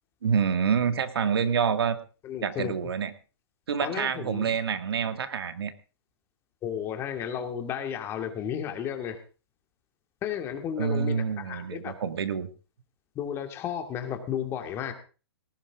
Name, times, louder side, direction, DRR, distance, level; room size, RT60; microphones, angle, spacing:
voice 1, 0.2-2.0 2.4-3.1 3.7-5.7 10.8-12.5, right 7 dB, 70° right, 10 dB, 2.0 m, -27 dB
voice 2, 2.2-2.7 3.8-4.6 6.6-9.2 10.2-11.9 13.2-14.9, left 9 dB, 20° left, 6 dB, 2.3 m, -33 dB
19.0 x 14.5 x 3.7 m, 0.35 s
hypercardioid pair, 155°, 13 cm